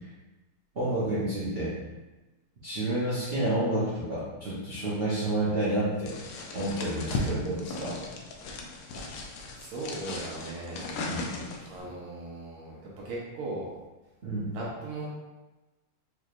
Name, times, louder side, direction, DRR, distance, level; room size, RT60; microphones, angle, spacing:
voice 1, 0.7-1.7 2.6-6.1 6.5-8.0 11.0-11.3 14.2-14.5, right 1 dB, 60° right, -10 dB, 0.6 m, -29 dB
sound 1, 6.1-11.8, left 2 dB, 90° left, 0.8 m, -37 dB
voice 2, 9.5-10.9 11.7-13.7 14.5-15.1, right 2 dB, 85° right, -5 dB, 1.6 m, -38 dB
4.8 x 3.2 x 2.4 m, 1.1 s
omnidirectional pair, 2.3 m